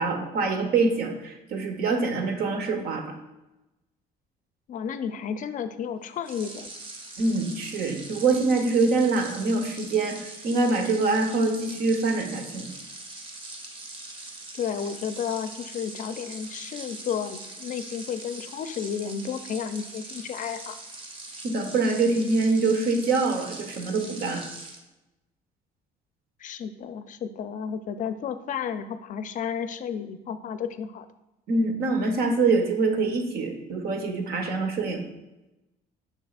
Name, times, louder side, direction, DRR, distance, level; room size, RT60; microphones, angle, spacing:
voice 1, 0.0-3.1 7.2-12.7 21.4-24.5 31.5-35.0, right 3 dB, 65° right, 5 dB, 1.0 m, -25 dB
voice 2, 4.7-6.7 14.5-20.8 26.4-31.1, left 7 dB, 50° left, 11 dB, 0.4 m, -32 dB
sound 1, 6.2-24.8, right 2 dB, 30° right, 0.9 m, -42 dB
6.4 x 6.1 x 2.4 m, 0.99 s
cardioid pair, 110°, 17 cm